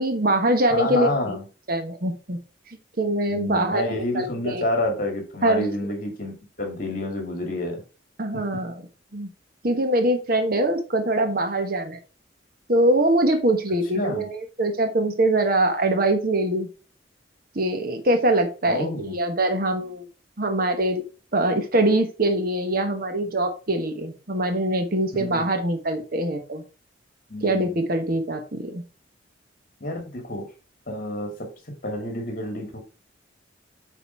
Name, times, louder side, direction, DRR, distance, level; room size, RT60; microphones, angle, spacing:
voice 1, 0.0-1.4 1.7-2.4 2.7-4.6 5.4-5.6 8.2-8.7 9.1-9.3 9.6-12.0 12.7-14.3 14.6-16.7 17.5-20.1 20.4-21.0 21.3-26.6 27.4-28.8, right 1 dB, 50° right, 6 dB, 1.2 m, -23 dB
voice 2, 0.7-1.5 3.3-7.8 8.3-8.6 13.9-14.3 18.7-19.2 25.1-25.5 27.3-27.8 29.8-30.5 30.9-32.8, left 1 dB, 50° left, 4 dB, 2.2 m, -29 dB
8.2 x 4.1 x 4.4 m, 0.34 s
head